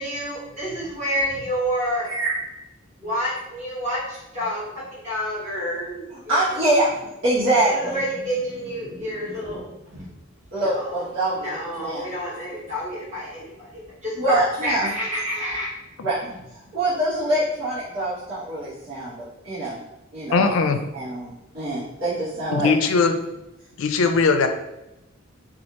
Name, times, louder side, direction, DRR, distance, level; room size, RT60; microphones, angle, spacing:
voice 1, 0.0-2.1 3.0-4.6 4.9-6.3 7.6-10.1 10.6-11.0 11.4-15.7, equal, 35° right, -7 dB, 1.1 m, -29 dB
voice 2, 6.1-7.0 7.2-7.9 10.5-12.1 14.2-14.9 16.0-19.8 20.1-20.5 20.9-22.7, right 1 dB, 75° right, -12 dB, 1.3 m, -24 dB
voice 3, 20.3-20.8 22.5-23.2 23.8-24.5, left 4 dB, 85° left, 7 dB, 0.4 m, -19 dB
4.3 x 2.4 x 2.9 m, 0.92 s
head